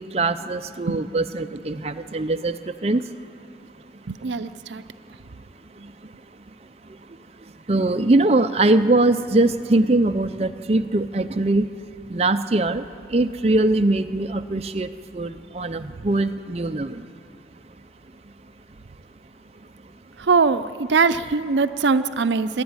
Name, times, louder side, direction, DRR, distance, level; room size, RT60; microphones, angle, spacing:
voice 1, 0.0-2.5 2.8-3.0 7.7-11.7 12.1-12.8 13.1-14.9 15.1-16.9, right 2 dB, 35° right, 8 dB, 0.5 m, -21 dB
voice 2, 4.1-4.8 20.2-22.6, right 4 dB, 90° right, 12 dB, 0.6 m, -21 dB
26.5 x 11.5 x 9.6 m, 2.6 s
head